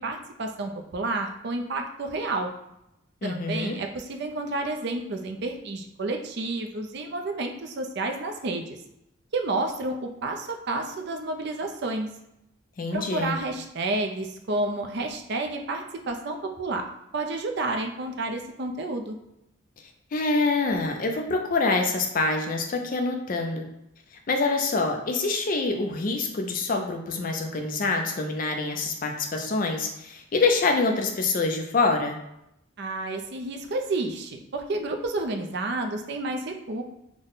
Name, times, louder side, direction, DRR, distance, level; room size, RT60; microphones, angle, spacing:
voice 1, 0.0-2.5 3.2-8.8 9.3-12.1 12.9-16.9 17.1-19.2 32.8-36.8, right 2 dB, 55° right, 4 dB, 0.4 m, -30 dB
voice 2, 3.2-3.8 12.8-13.4 20.1-23.7 24.3-32.2, left 3 dB, 40° left, 3 dB, 0.4 m, -26 dB
3.5 x 2.1 x 3.8 m, 0.83 s
head